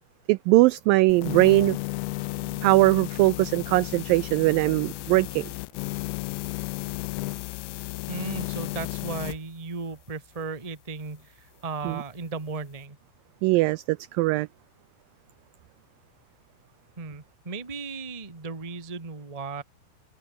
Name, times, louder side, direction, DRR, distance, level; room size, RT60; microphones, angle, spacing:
voice 1, 0.3-1.8 2.6-5.5 11.8-12.0 13.4-14.5, right 21 dB, 85° right, 2.0 m, -21 dB
sound 1, 1.1-9.4, left 23 dB, 85° left, 2.4 m, -33 dB
voice 2, 8.1-13.0 17.0-19.6, right 4 dB, 20° right, 0.8 m, -36 dB
open air
omnidirectional pair, 4.5 m